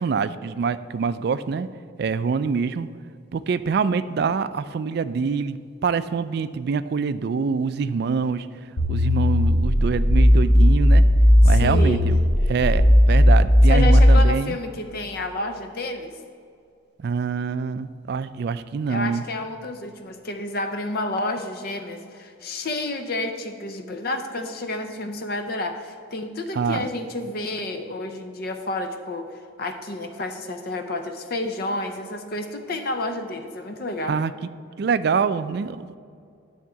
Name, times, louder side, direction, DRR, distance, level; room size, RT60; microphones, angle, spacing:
voice 1, 0.0-1.7 2.0-2.9 3.3-8.5 8.9-11.0 11.4-12.2 12.5-14.6 17.0-19.2 26.5-26.9 34.1-34.3 34.8-36.0, right 5 dB, 55° right, 13 dB, 0.3 m, -25 dB
sound 1, 8.8-14.2, equal, 70° left, 0.9 m, -16 dB
voice 2, 11.4-12.0 13.7-16.2 18.9-34.2, left 2 dB, 50° left, 6 dB, 0.6 m, -30 dB
10.0 x 3.6 x 7.1 m, 2.3 s
head